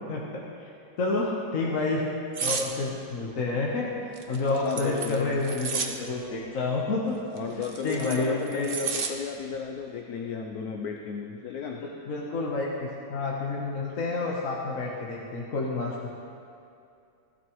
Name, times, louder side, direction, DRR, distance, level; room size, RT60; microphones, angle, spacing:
voice 1, 0.1-0.7 1.0-2.1 2.4-7.2 7.8-8.8 11.8-16.1, left 3 dB, 45° left, -3 dB, 1.4 m, -29 dB
sound 1, 2.3-2.7 4.1-5.9 7.4-9.1 9.5-9.8, right 5 dB, 70° right, 0.5 m, -32 dB
voice 2, 4.6-5.4 7.3-11.8, left 6 dB, 70° left, 3 dB, 0.9 m, -34 dB
17.0 x 11.5 x 3.1 m, 2.5 s
omnidirectional pair, 2.2 m